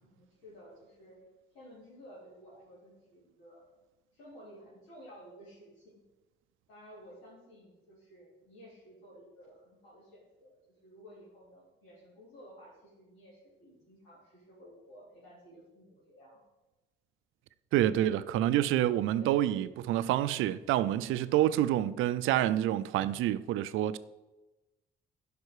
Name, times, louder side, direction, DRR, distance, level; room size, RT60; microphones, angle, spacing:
voice 1, 0.0-1.2 1.5-3.6 4.1-6.0 6.7-16.4 19.1-19.4, equal, 85° left, 3.7 m, -54 dB
voice 2, 17.7-24.0, right 12 dB, 90° right, 0.5 m, -28 dB
12.0 x 5.4 x 4.8 m
cardioid pair, 90°, 20 cm